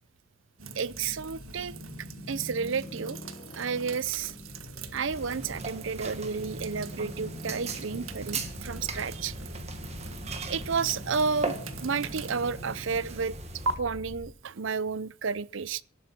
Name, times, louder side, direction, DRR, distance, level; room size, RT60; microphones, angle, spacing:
sound 1, 0.6-14.3, left 1 dB, 35° left, 0.9 m, -44 dB
sound 2, 0.6-13.7, right 3 dB, 85° right, 1.6 m, -42 dB
voice 1, 0.8-1.7 2.3-3.2 3.5-4.3 4.9-9.3 10.3-11.5 11.8-13.3 13.8-15.8, right 5 dB, 70° right, 0.6 m, -31 dB
sound 3, 5.1-13.7, right 4 dB, 30° right, 1.9 m, -39 dB
17.5 x 11.5 x 4.3 m
head